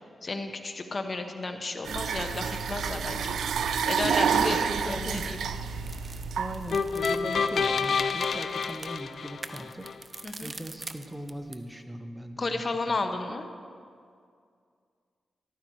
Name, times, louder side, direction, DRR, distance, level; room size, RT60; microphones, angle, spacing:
voice 1, 0.2-3.4 3.9-5.4 10.2-10.5 12.4-13.5, left 3 dB, 45° left, 7 dB, 1.1 m, -33 dB
sound 1, 1.8-6.9, right 6 dB, 90° right, 0.5 m, -29 dB
voice 2, 4.2-5.3 6.4-13.0, right 1 dB, 10° right, 6 dB, 0.9 m, -39 dB
sound 2, 5.1-11.7, right 3 dB, 35° right, 0.7 m, -46 dB
sound 3, 6.7-9.9, left 5 dB, 65° left, 0.6 m, -28 dB
14.0 x 12.5 x 4.7 m, 2.2 s
cardioid pair, 80°, 0 cm